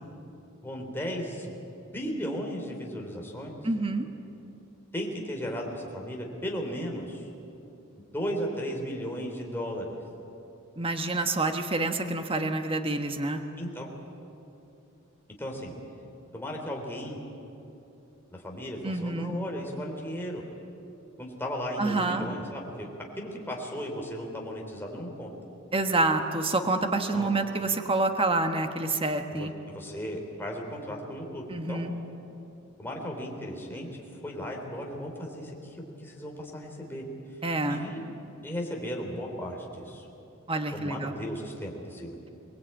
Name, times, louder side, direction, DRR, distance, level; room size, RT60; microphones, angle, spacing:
voice 1, 0.6-1.6 1.9-3.6 4.9-7.3 8.1-10.0 13.6-13.9 15.4-15.7 16.3-17.2 18.3-20.4 21.2-22.9 23.2-25.3 27.1-27.3 29.3-31.8 32.8-37.0 37.7-38.1 38.4-40.1 40.7-42.1, equal, 10° left, 0 dB, 3.5 m, -35 dB
voice 2, 3.6-4.1 10.8-13.4 18.8-19.4 21.8-22.3 25.7-29.5 31.5-31.9 37.4-37.8 40.5-41.1, right 2 dB, 25° right, 6 dB, 1.3 m, -27 dB
24.0 x 20.0 x 8.9 m, 2.8 s
head